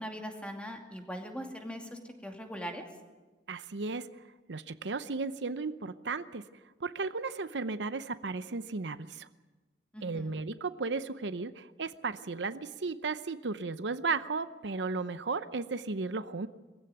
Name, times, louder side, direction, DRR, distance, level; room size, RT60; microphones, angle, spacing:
voice 1, 0.0-2.8 9.9-10.3, equal, 5° left, 3 dB, 2.5 m, -41 dB
voice 2, 3.5-4.1 4.5-6.4 6.8-9.3 10.0-16.5, right 4 dB, 75° right, 12 dB, 0.8 m, -35 dB
21.5 x 15.5 x 9.3 m, 1.2 s
head